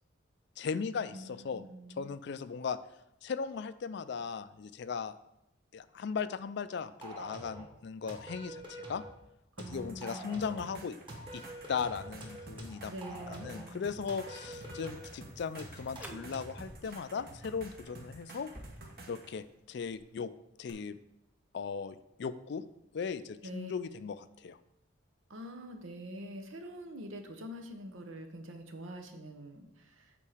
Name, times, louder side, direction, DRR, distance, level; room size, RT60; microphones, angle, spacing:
voice 1, 0.6-1.6 2.0-2.8 3.2-5.1 5.7-9.0 9.7-11.0 11.3-11.4 11.7-12.9 13.3-18.5 19.1-20.3 20.6-21.0 21.5-22.6 22.9-24.6, left 6 dB, 60° left, 14 dB, 0.4 m, -37 dB
voice 2, 1.1-2.1 9.6-10.5 12.9-13.8 23.4-23.7 25.3-30.1, equal, 85° right, 6 dB, 1.0 m, -45 dB
sound 1, 7.0-7.7 8.1-9.1 9.6-10.7 11.1-13.7 14.1-15.1 15.6-16.6, equal, 25° right, 1.5 m, -46 dB
sound 2, 9.7-19.3 20.7-20.8, right 2 dB, 50° right, 1.2 m, -51 dB
sound 3, 14.9-20.1, equal, 10° right, 0.6 m, -55 dB
8.4 x 4.6 x 4.9 m, 0.85 s
head